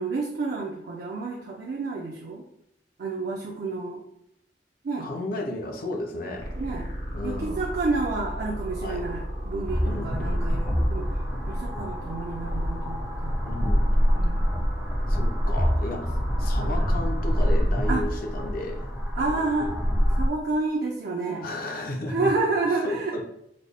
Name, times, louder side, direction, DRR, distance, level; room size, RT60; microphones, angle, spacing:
voice 1, 0.0-2.4 3.0-4.0 4.8-5.1 6.6-6.9 7.2-13.3 14.1-14.4 16.6-16.9 17.9-18.1 19.1-19.7 20.1-21.5 22.1-23.2, right 3 dB, 60° right, -2 dB, 0.5 m, -29 dB
voice 2, 5.0-6.5 7.1-7.6 8.8-9.0 9.8-10.5 13.4-13.9 15.1-18.9 21.4-22.3 22.8-23.2, left 1 dB, 55° left, 3 dB, 0.5 m, -33 dB
sound 1, 6.4-17.5, equal, 75° left, 0.9 m, -36 dB
sound 2, 9.7-20.3, equal, ahead, 0.5 m, -25 dB
3.9 x 2.1 x 3.3 m, 0.79 s
head